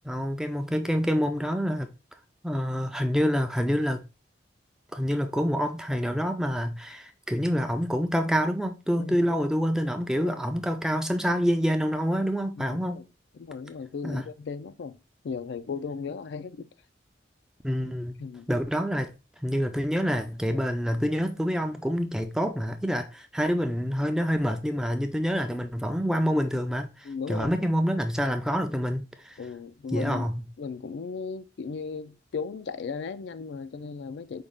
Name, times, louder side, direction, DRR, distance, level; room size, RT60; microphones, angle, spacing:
voice 1, 0.0-1.9 2.4-4.0 4.9-13.0 14.0-14.3 17.6-18.1 18.5-19.1 19.4-29.4 29.9-30.3, equal, 5° right, 0.4 m, -27 dB
voice 2, 9.0-9.4 10.1-10.4 12.6-13.0 13.3-15.0 15.2-16.7 18.2-18.5 27.0-27.7 29.4-30.3 30.6-34.4, left 5 dB, 70° left, 0.4 m, -36 dB
5.2 x 2.4 x 3.5 m
head